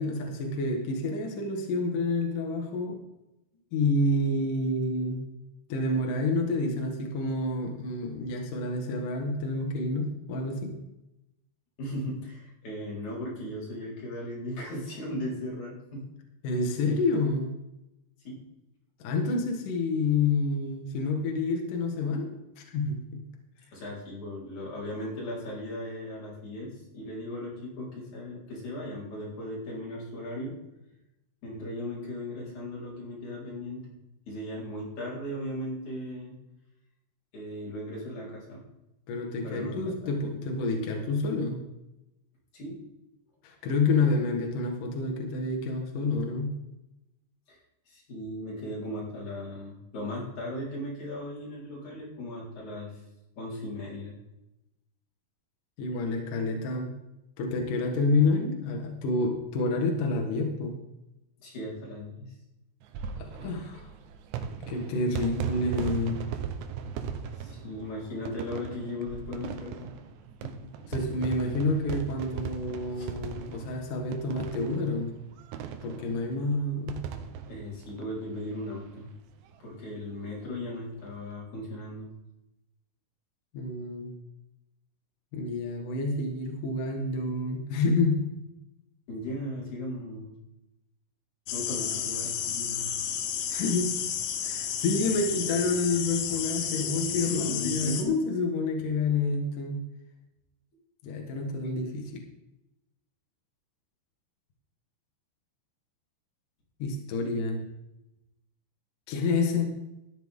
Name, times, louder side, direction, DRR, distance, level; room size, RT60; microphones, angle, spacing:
voice 1, 0.0-3.0 3.7-5.2 5.7-10.7 16.4-17.5 19.0-22.3 22.6-23.2 39.1-41.6 43.4-46.5 55.8-56.9 57.4-60.8 63.2-63.9 64.7-66.2 70.9-75.2 75.8-77.0 83.5-84.1 85.3-88.2 93.5-93.9 94.4-99.8 101.0-102.2 106.8-107.7 109.1-109.7, left 3 dB, 60° left, 1 dB, 2.6 m, -28 dB
voice 2, 11.8-16.1 18.3-18.4 23.7-30.5 31.4-33.8 34.3-36.4 37.3-38.6 39.4-39.8 40.1-40.3 42.5-42.8 47.5-47.6 47.9-52.9 53.4-54.2 61.4-62.3 67.4-70.0 70.4-70.7 73.0-73.1 77.4-79.1 79.6-82.1 89.1-90.4 91.5-92.9 97.2-98.0, left 1 dB, 45° left, -5 dB, 5.2 m, -37 dB
sound 1, 62.8-78.8 79.2-79.3 79.4-79.5 80.8-81.1, right 7 dB, 80° right, 3.1 m, -38 dB
sound 2, 91.5-98.0, left 8 dB, 85° left, 3.5 m, -32 dB
14.5 x 10.5 x 3.6 m, 0.92 s
omnidirectional pair, 5.0 m